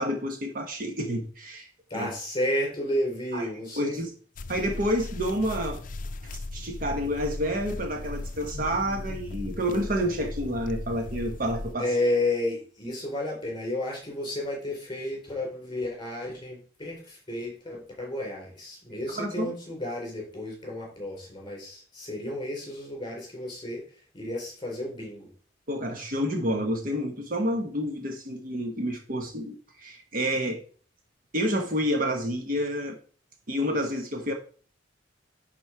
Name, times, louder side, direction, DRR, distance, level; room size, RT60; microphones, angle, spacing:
voice 1, 0.0-1.7 1.9-2.1 3.3-3.5 3.8-4.1 4.5-5.8 6.5-11.9 19.1-19.5 25.7-30.6 31.3-33.0 33.5-34.3, equal, 50° right, 1.3 m, -29 dB
voice 2, 1.9-4.0 11.8-23.8 24.1-25.3, left 1 dB, 25° left, 4.9 m, -32 dB
sound 1, 4.4-11.7, left 2 dB, 45° left, 0.5 m, -37 dB
10.5 x 4.3 x 4.8 m
head